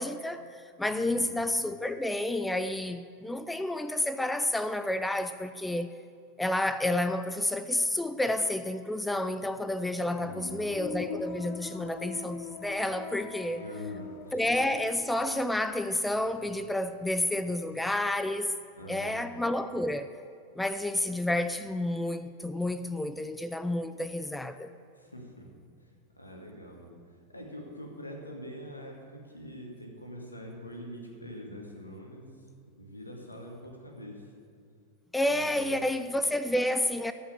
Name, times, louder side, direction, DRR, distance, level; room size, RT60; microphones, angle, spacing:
voice 1, 0.0-5.9 6.4-13.6 14.3-18.5 18.9-20.1 20.6-24.8 35.1-37.1, left 1 dB, 5° left, 0.4 m, -30 dB
voice 2, 0.8-1.3 10.2-10.6 13.6-14.5 18.8-19.3 24.9-25.5 25.8-25.9 26.2-27.0 27.3-32.4 32.8-34.3 35.2-35.9, equal, 85° left, 2.1 m, -44 dB
sound 1, 10.2-17.1 17.4-18.1, left 6 dB, 45° left, 1.1 m, -43 dB
14.0 x 5.7 x 9.1 m
figure-of-eight pair, 90°, 0 cm